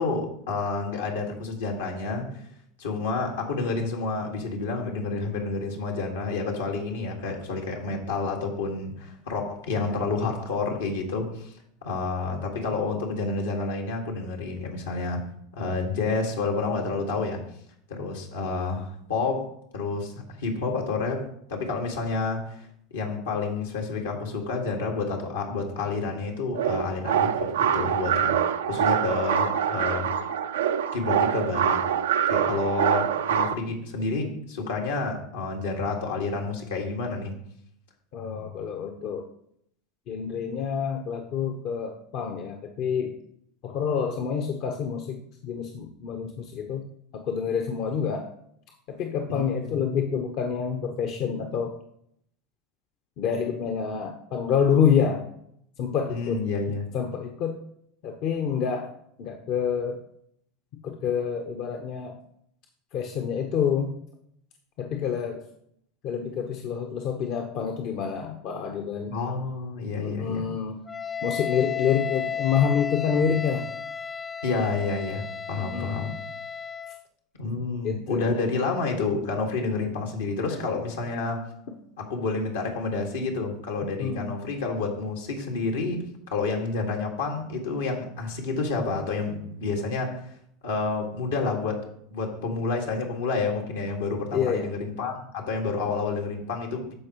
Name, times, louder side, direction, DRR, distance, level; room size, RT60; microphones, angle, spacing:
voice 1, 0.0-2.3 2.8-11.5 11.8-15.3 15.5-17.4 17.9-19.5 19.7-20.1 20.4-27.5 27.7-28.3 28.7-30.1 30.9-31.8 32.3-37.4 49.3-49.8 56.1-56.9 69.1-70.4 74.4-76.2 77.4-81.5 82.0-86.0 86.3-90.3 90.6-96.9, left 3 dB, 80° left, 0 dB, 1.8 m, -29 dB
sound 1, 26.5-33.5, right 9 dB, 80° right, 0.4 m, -25 dB
voice 2, 38.1-39.3 40.1-43.1 43.6-46.9 47.1-48.3 48.9-51.7 53.2-55.2 55.8-56.4 56.9-57.6 58.0-58.9 59.2-60.0 60.8-62.2 62.9-63.9 64.8-65.4 66.0-69.2 70.0-70.8 71.2-73.7 75.6-76.0 77.8-78.3 80.5-80.6 84.0-84.3 94.3-94.7, left 7 dB, 55° left, 3 dB, 0.9 m, -27 dB
Wind instrument woodwind instrument, 70.9-77.0, left 7 dB, 20° left, 0.3 m, -33 dB
13.0 x 4.8 x 3.0 m, 0.70 s
hypercardioid pair, 85°, 0 cm